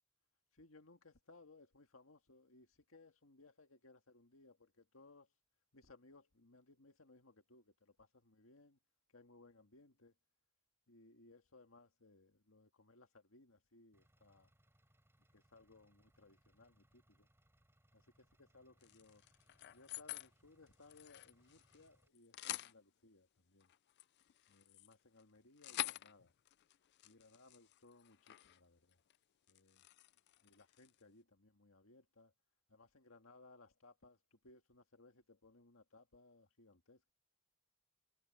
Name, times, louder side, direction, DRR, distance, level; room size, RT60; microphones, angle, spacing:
voice 1, 0.5-5.3 5.7-8.8 9.1-10.1 10.9-14.5 15.3-17.3 17.9-19.2 19.7-23.7 24.5-26.3 27.0-29.0 29.5-29.9 30.4-32.3 32.7-37.1, left 3 dB, 75° left, 2.0 m, -64 dB
Engine, 13.9-22.1, right 1 dB, 10° right, 4.3 m, -74 dB
sound 1, 18.8-20.3 20.7-21.9 22.1-22.7 23.6-28.6 28.9-29.2 29.5-31.0, left 14 dB, 55° left, 0.4 m, -48 dB
head